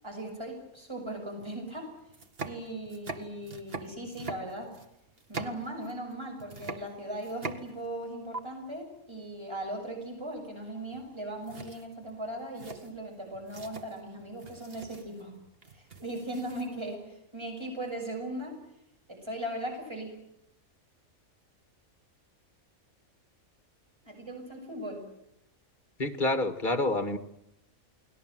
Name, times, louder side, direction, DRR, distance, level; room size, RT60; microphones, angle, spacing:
voice 1, 0.0-1.9 2.4-4.7 5.3-15.3 15.7-18.6 19.2-20.1 24.0-25.0, right 1 dB, 20° right, 2 dB, 6.2 m, -38 dB
sound 1, 1.4-1.5 2.0-6.1 6.4-8.0 8.3-8.4 10.9-11.2 11.4-16.9, right 4 dB, 45° right, 2.0 m, -43 dB
voice 2, 26.0-27.2, left 2 dB, 35° left, 9 dB, 2.0 m, -28 dB
29.5 x 20.0 x 7.7 m, 0.81 s
omnidirectional pair, 1.5 m